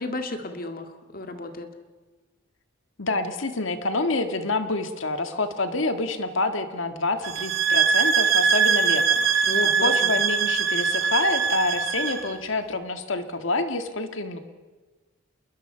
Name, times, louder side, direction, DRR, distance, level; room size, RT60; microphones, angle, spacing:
voice 1, 0.0-1.7 9.4-10.1, left 2 dB, 45° left, 6 dB, 2.0 m, -32 dB
voice 2, 3.0-14.4, left 2 dB, 65° left, 8 dB, 1.7 m, -27 dB
sound 1, 7.2-12.3, right 6 dB, 80° right, 2.5 m, -22 dB
27.5 x 22.0 x 5.7 m, 1.3 s
head